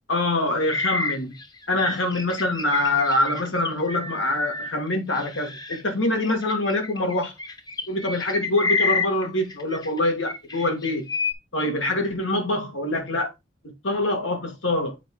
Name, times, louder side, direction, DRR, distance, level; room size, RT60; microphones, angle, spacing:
voice 1, 0.1-1.4 1.7-7.3 7.9-11.1 11.5-13.3 13.8-14.9, left 2 dB, 85° left, 2.1 m, -24 dB
sound 1, 0.7-5.8 6.2-10.0 10.3-11.3, left 4 dB, 20° left, 0.9 m, -29 dB
7.2 x 4.8 x 3.7 m
head